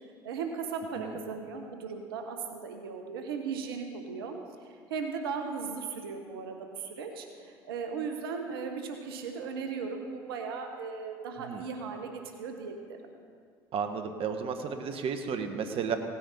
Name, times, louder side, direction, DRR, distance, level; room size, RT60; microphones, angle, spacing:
voice 1, 0.2-4.3 4.6-13.0, right 5 dB, 85° right, 4 dB, 1.0 m, -37 dB
voice 2, 13.7-16.0, right 6 dB, 50° right, 7 dB, 1.1 m, -33 dB
17.0 x 9.9 x 4.2 m, 2.1 s
hypercardioid pair, 70°, 12 cm